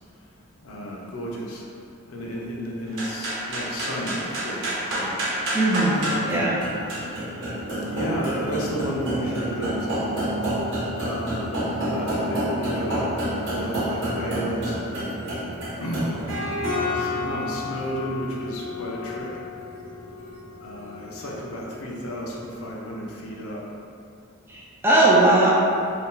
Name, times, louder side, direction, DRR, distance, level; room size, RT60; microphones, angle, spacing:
voice 1, 0.6-1.7 2.1-5.2 6.0-6.3 7.9-10.1 11.0-13.0 13.4-15.0 15.8-16.2 16.7-19.3 20.6-23.6, equal, 70° left, -3 dB, 0.5 m, -32 dB
sound 1, 2.9-22.4, equal, 60° right, 0.9 m, -29 dB
voice 2, 5.5-6.6 24.5-25.5, right 2 dB, 10° right, -6 dB, 0.3 m, -19 dB
2.6 x 2.3 x 3.7 m, 2.6 s
head